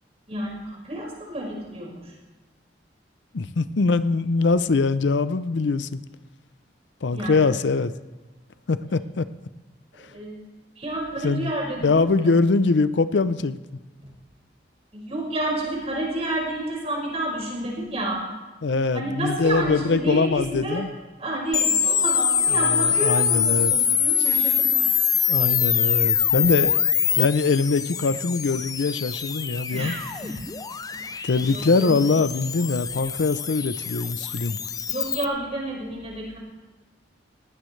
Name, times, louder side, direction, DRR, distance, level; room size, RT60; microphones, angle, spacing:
voice 1, 0.3-2.1 7.1-7.5 8.9-9.0 10.0-10.5 10.8-12.1 14.9-18.2 18.9-20.9 21.2-25.1 29.7-30.5 30.9-31.9 34.9-36.4, right 1 dB, 35° right, -3 dB, 5.5 m, -30 dB
voice 2, 3.3-6.0 7.0-7.9 8.7-9.3 11.2-11.5 11.8-13.6 18.6-20.9 22.6-23.7 25.3-26.8 27.2-29.9 31.2-34.6, left 3 dB, 85° left, 14 dB, 0.6 m, -22 dB
sound 1, 21.5-35.2, left 7 dB, 20° left, 0.5 m, -24 dB
20.0 x 15.5 x 3.2 m, 1.2 s
head